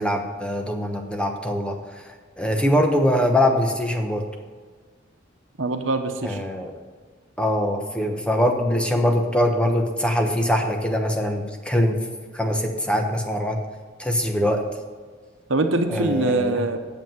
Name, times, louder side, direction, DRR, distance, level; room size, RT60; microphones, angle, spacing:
voice 1, 0.0-2.0 2.4-4.2 6.2-6.7 7.4-12.0 12.3-13.6 14.0-14.6 15.9-16.6, equal, 5° left, 3 dB, 0.9 m, -23 dB
voice 2, 5.6-6.4 15.5-16.8, right 2 dB, 80° right, 6 dB, 1.0 m, -23 dB
8.2 x 7.3 x 7.6 m, 1.5 s
head